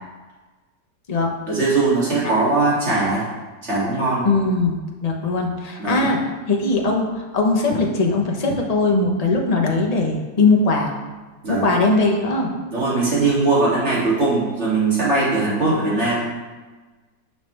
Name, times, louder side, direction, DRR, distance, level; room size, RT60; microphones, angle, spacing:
voice 1, 1.5-3.3 3.6-4.3 5.8-6.1 11.4-11.7 12.7-16.3, right 3 dB, 40° right, -8 dB, 3.1 m, -20 dB
voice 2, 4.2-6.2 6.5-10.9 11.5-12.5, left 3 dB, 30° left, 0 dB, 0.9 m, -20 dB
9.3 x 5.9 x 3.4 m, 1.3 s
omnidirectional pair, 1.8 m